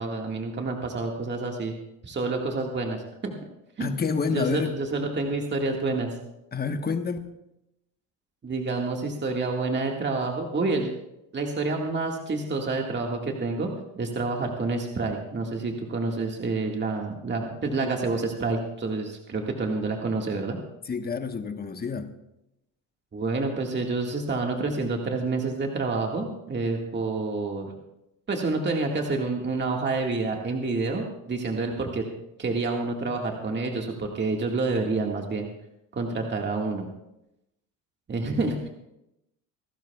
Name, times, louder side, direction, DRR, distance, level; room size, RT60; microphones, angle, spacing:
voice 1, 0.0-1.8 2.0-3.3 3.8-3.9 4.3-6.1 8.4-10.9 11.3-20.6 23.1-27.7 28.3-32.0 32.4-35.5 35.9-36.9 38.1-38.7, right 3 dB, 30° right, 1 dB, 1.9 m, -28 dB
voice 2, 3.8-4.7 6.5-7.2 20.9-22.1, left 5 dB, 25° left, 7 dB, 1.2 m, -28 dB
26.5 x 12.0 x 2.4 m, 0.88 s
supercardioid pair, 85°, 38 cm